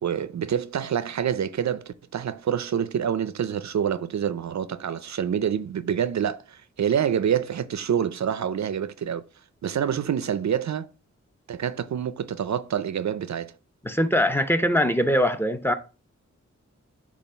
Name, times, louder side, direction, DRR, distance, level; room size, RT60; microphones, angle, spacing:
voice 1, 0.0-9.2 9.6-10.9 11.5-13.5, right 8 dB, 65° right, 0.5 m, -27 dB
voice 2, 13.8-15.7, equal, 10° left, 0.7 m, -22 dB
7.0 x 2.5 x 5.6 m
wide cardioid pair, 70°, 30 cm